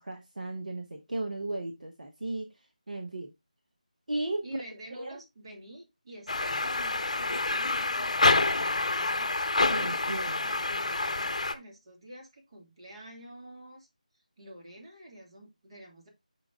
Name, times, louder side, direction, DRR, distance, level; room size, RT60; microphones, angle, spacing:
voice 1, 0.0-2.5 2.9-3.3 4.1-4.4 4.9-5.1 9.7-10.4, right 2 dB, 70° right, 4 dB, 1.1 m, -35 dB
voice 2, 4.4-10.2 10.4-13.9 14.4-16.1, right 1 dB, 40° right, 1 dB, 2.4 m, -48 dB
sound 1, 6.3-11.5, left 3 dB, 55° left, 0.7 m, -27 dB
5.9 x 4.8 x 3.5 m, 0.21 s
figure-of-eight pair, 160°, 4 cm